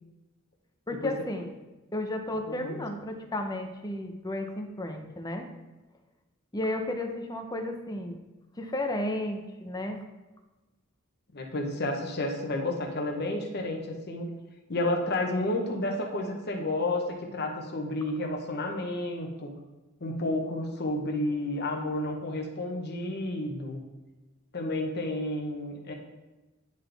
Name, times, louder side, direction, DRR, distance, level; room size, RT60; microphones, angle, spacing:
voice 1, 0.9-1.5 1.9-5.5 6.5-8.2 8.6-10.0, left 1 dB, 15° left, 4 dB, 0.6 m, -33 dB
voice 2, 2.5-2.8 11.3-14.3 14.7-19.5 20.0-23.8 24.5-25.9, left 1 dB, 50° left, 2 dB, 1.0 m, -31 dB
9.9 x 4.0 x 3.4 m, 1.1 s
head